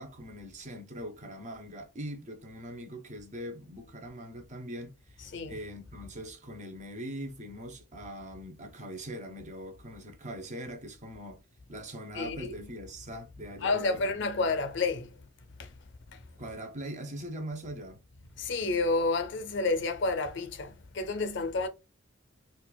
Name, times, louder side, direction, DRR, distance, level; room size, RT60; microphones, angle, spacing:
voice 1, 0.0-11.4 11.7-14.5 16.4-18.0, right 1 dB, 40° right, 0.8 m, -42 dB
voice 2, 12.1-12.7 13.6-15.3 15.6-15.7 16.1-16.2 18.4-21.7, left 3 dB, 60° left, 0.6 m, -30 dB
4.1 x 2.4 x 2.2 m
head